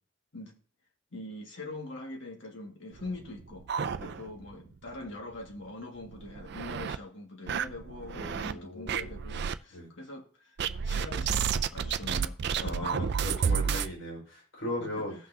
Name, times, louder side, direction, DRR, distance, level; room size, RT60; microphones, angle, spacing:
voice 1, 1.1-3.7 4.2-10.6 10.8-13.1 14.8-15.1, left 2 dB, 70° left, 1.9 m, -43 dB
sound 1, 3.0-4.5 4.9-5.0 5.3-5.4 6.0-7.0 7.5-8.5 8.9-9.6 10.6-13.9, right 7 dB, 60° right, 0.4 m, -31 dB
voice 2, 8.1-9.2 9.7-9.9 12.6-15.2, left 1 dB, 90° left, 5.1 m, -38 dB
16.5 x 5.8 x 2.8 m
head